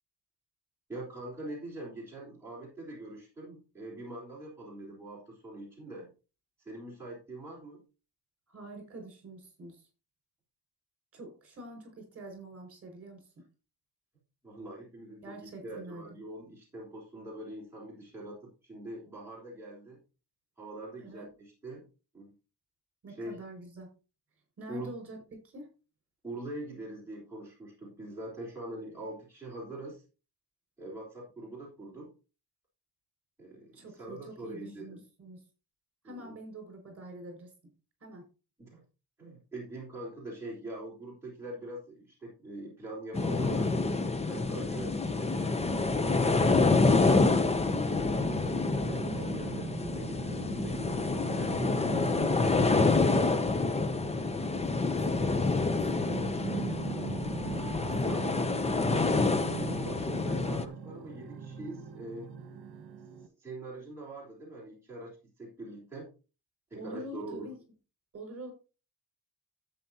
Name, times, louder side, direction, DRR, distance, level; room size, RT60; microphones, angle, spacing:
voice 1, 0.9-6.1 6.6-7.8 14.4-20.0 20.6-21.9 22.1-22.3 23.1-23.4 24.7-24.9 26.2-30.0 30.8-32.1 33.4-34.9 36.0-36.3 38.6-38.8 39.2-43.7 44.3-48.0 48.8-53.8 57.6-58.4 58.7-62.3 63.4-66.1 66.7-67.5, right 1 dB, 5° right, -6 dB, 3.8 m, -43 dB
voice 2, 8.5-9.9 11.1-13.4 15.2-16.2 21.0-21.3 23.0-23.9 24.6-25.2 25.5-25.7 33.7-35.4 36.0-37.5 38.0-38.2 49.2-49.6 54.5-56.1 58.0-58.3 66.8-67.6 68.1-68.5, right 1 dB, 35° right, 3 dB, 5.4 m, -46 dB
sound 1, 43.1-60.6, left 3 dB, 15° left, 0.6 m, -27 dB
sound 2, 48.0-63.3, right 6 dB, 60° right, 1.4 m, -41 dB
12.5 x 8.5 x 2.8 m, 0.32 s
wide cardioid pair, 170°, 41 cm